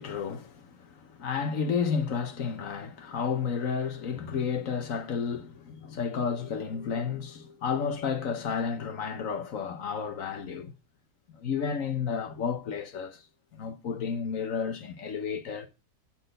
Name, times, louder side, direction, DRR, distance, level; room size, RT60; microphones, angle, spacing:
voice 1, 0.0-10.7 11.3-13.2 13.5-15.7, left 6 dB, 60° left, 1.2 m, -32 dB
8.9 x 4.1 x 6.5 m
omnidirectional pair, 1.7 m